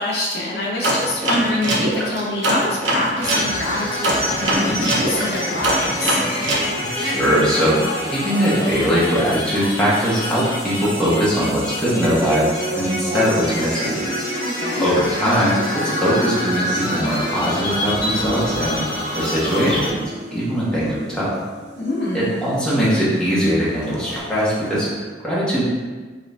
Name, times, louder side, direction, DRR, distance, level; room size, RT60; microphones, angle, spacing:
voice 1, 0.0-6.2 14.4-14.9 21.8-22.3, left 1 dB, 60° left, -2 dB, 0.6 m, -25 dB
sound 1, 0.8-3.5 4.0-6.7, right 1 dB, 80° right, 0.9 m, -21 dB
sound 2, 3.2-19.9, left 1 dB, 25° left, 1.4 m, -27 dB
voice 2, 6.9-14.0 14.8-18.8 19.1-20.0 20.3-21.4 22.1-25.6, equal, 5° left, -9 dB, 1.1 m, -20 dB
sound 3, 8.9-24.9, right 1 dB, 40° right, 0.6 m, -33 dB
5.2 x 3.2 x 2.6 m, 1.4 s
head